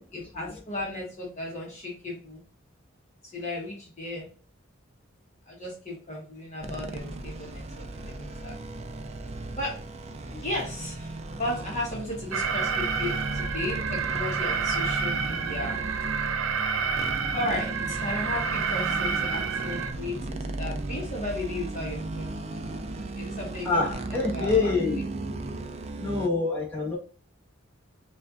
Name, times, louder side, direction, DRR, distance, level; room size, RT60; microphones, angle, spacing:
voice 1, 0.1-2.4 3.3-4.3 5.5-8.6 9.5-9.8 10.4-15.8 17.3-22.3 23.1-23.8 24.1-25.0, left 2 dB, 35° left, -3 dB, 1.2 m, -35 dB
sound 1, 6.6-26.3, right 2 dB, 35° right, 0.4 m, -35 dB
Alarm, 12.3-19.9, right 6 dB, 80° right, 0.5 m, -29 dB
voice 2, 23.6-25.0 25.9-27.0, left 4 dB, 10° left, -5 dB, 1.5 m, -26 dB
5.4 x 2.5 x 2.5 m, 0.41 s
head